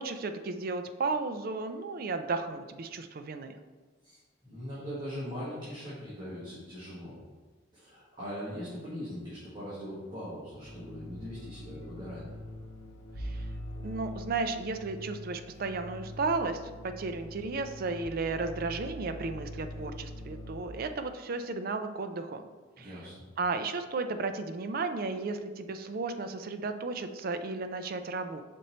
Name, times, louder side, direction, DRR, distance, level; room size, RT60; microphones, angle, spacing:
voice 1, 0.0-3.6 13.2-13.5 13.8-22.4 22.8-23.0 23.4-28.4, right 3 dB, 45° right, 8 dB, 0.4 m, -34 dB
voice 2, 4.0-7.1 7.7-12.3 22.8-23.3, equal, 25° right, -10 dB, 1.6 m, -41 dB
sound 1, 10.6-20.6, left 1 dB, 90° left, 0.8 m, -43 dB
5.2 x 4.2 x 4.2 m, 1.4 s
head